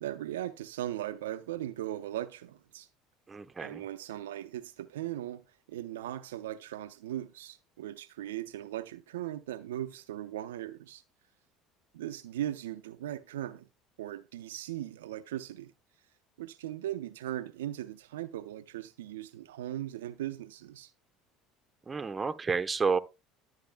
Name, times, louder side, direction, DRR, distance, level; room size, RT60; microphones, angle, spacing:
voice 1, 0.0-2.9 3.6-5.4 5.7-11.0 11.9-13.7 14.0-15.7 16.4-20.9, right 13 dB, 80° right, 0.5 m, -38 dB
voice 2, 3.3-3.8 21.9-23.0, right 5 dB, 25° right, 0.9 m, -30 dB
11.5 x 7.9 x 2.2 m
hypercardioid pair, 70°, 0 cm